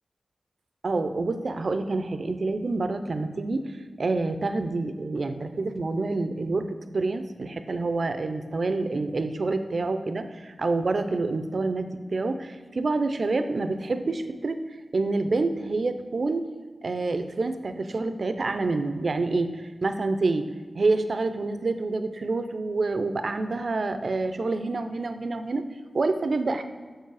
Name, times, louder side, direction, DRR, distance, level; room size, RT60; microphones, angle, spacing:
voice 1, 0.8-3.7 4.0-14.6 14.9-16.5 16.8-20.4 20.8-25.6 25.9-26.6, right 3 dB, 65° right, 9 dB, 0.5 m, -27 dB
6.2 x 4.6 x 4.7 m, 1.4 s
cardioid pair, 55°, 0 cm